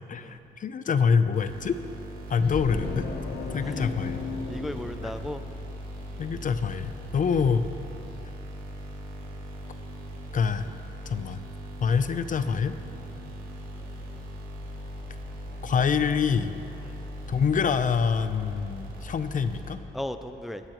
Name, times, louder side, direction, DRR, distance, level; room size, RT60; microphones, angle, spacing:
voice 1, 0.1-1.8 2.3-3.1 3.5-4.2 5.0-5.1 6.2-7.6 10.3-10.7 11.1-11.4 11.8-12.8 15.6-16.5 17.3-19.8, left 6 dB, 40° left, 11 dB, 0.6 m, -26 dB
sound 1, 1.3-20.1, equal, 85° right, 3.0 m, -40 dB
sound 2, 2.4-5.8, left 4 dB, 55° left, 1.3 m, -35 dB
voice 2, 3.6-3.9 4.5-5.4 16.8-17.0 19.9-20.6, left 1 dB, ahead, 8 dB, 0.5 m, -36 dB
22.0 x 9.9 x 3.0 m, 2.8 s
cardioid pair, 90°, 20 cm